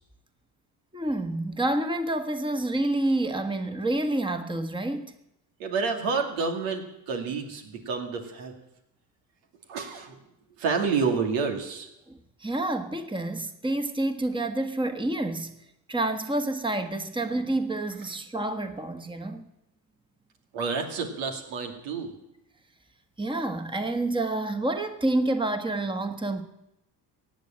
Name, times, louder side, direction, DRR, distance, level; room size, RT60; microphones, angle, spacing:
voice 1, 0.9-5.1 12.1-15.5 15.9-19.5 23.2-26.4, right 2 dB, 10° right, 1.5 m, -28 dB
voice 2, 5.6-8.5 9.7-10.2 10.6-11.9 20.5-22.1, right 5 dB, 80° right, 2.5 m, -29 dB
16.0 x 8.4 x 8.9 m
hypercardioid pair, 60°, 50 cm